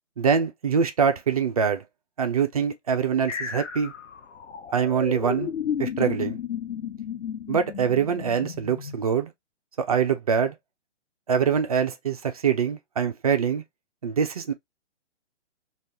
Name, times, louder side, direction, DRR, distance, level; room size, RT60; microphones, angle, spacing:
voice 1, 0.2-1.8 2.2-3.9 4.7-5.5 5.8-6.4 7.5-9.3 9.8-10.6 11.3-13.6 14.0-14.5, right 7 dB, 35° right, 0.4 m, -24 dB
sound 1, 3.3-9.0, left 8 dB, 80° left, 0.7 m, -33 dB
2.7 x 2.3 x 3.3 m
hypercardioid pair, 140°, 36 cm